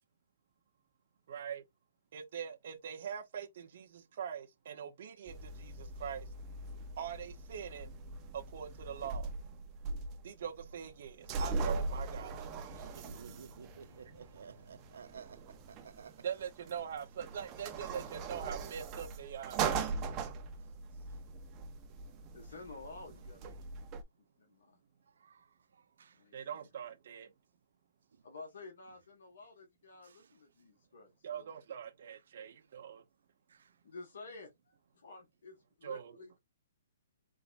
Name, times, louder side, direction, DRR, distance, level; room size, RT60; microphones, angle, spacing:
voice 1, 1.3-1.6 2.1-6.3 7.0-7.9 8.3-9.3 10.2-12.5 16.2-19.7 26.3-27.3 31.2-33.0 35.8-36.1, right 8 dB, 45° right, 1.1 m, -43 dB
sound 1, 5.3-24.0, right 4 dB, 15° right, 0.7 m, -41 dB
sound 2, 12.0-17.0, left 1 dB, 15° left, 1.9 m, -62 dB
voice 2, 12.7-16.2 25.2-25.5 25.7-26.2 30.0-30.2 33.5-33.7, right 6 dB, 75° right, 0.6 m, -54 dB
voice 3, 22.3-23.6 24.4-24.8 26.1-26.7 28.2-31.5 33.8-36.4, left 3 dB, 65° left, 1.8 m, -51 dB
4.1 x 3.8 x 2.7 m
hypercardioid pair, 175°, 0 cm